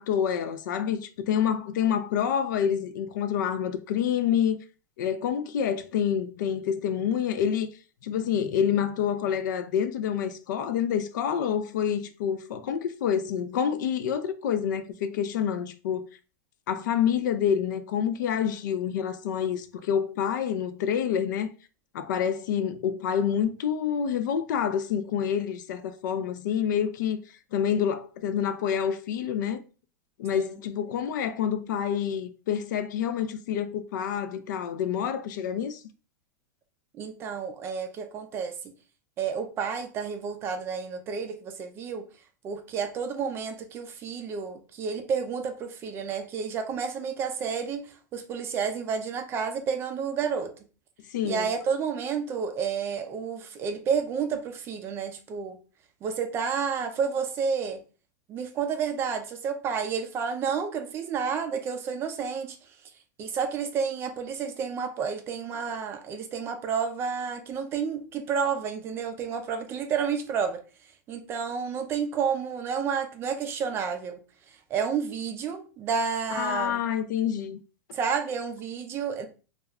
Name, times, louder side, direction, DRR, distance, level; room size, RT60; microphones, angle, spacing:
voice 1, 0.0-4.6 5.0-7.7 8.0-16.1 16.7-21.5 21.9-27.2 27.5-29.6 30.2-35.8 51.1-51.5 76.3-77.6, left 8 dB, 75° left, 0.4 m, -27 dB
voice 2, 36.9-38.5 39.2-42.1 42.4-50.5 51.2-55.6 56.0-57.8 58.3-62.6 63.2-70.6 71.1-74.2 74.7-76.8 77.9-79.3, right 6 dB, 25° right, 0.4 m, -30 dB
2.3 x 2.1 x 3.4 m
supercardioid pair, 150°, 10 cm